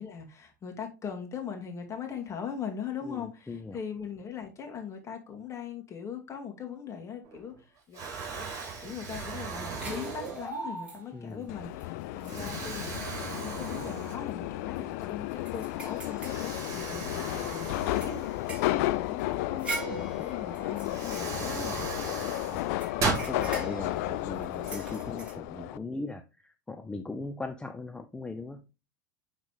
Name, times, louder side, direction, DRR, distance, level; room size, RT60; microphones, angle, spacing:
voice 1, 0.0-8.1 8.3-8.5 8.8-21.9, left 7 dB, 30° left, 2.3 m, -40 dB
voice 2, 3.0-3.8 11.1-11.5 12.3-12.7 22.5-22.8 23.2-28.6, left 3 dB, 10° left, 0.6 m, -39 dB
Explosion, 7.2-7.6 7.9-10.8 11.4-11.5 12.2-14.5 14.9-15.0 16.2-18.8 20.3-20.4 20.8-23.3, right 4 dB, 35° right, 4.3 m, -37 dB
sound 1, 9.8-11.3 11.8-11.9 12.2-13.1 13.6-13.8 14.2-14.3 14.8-17.2 17.6-22.1 22.6-25.3, right 2 dB, 10° right, 3.5 m, -42 dB
Subway metro underground, 11.5-25.8, left 17 dB, 65° left, 0.4 m, -33 dB
9.5 x 4.1 x 3.3 m
hypercardioid pair, 100°, 10 cm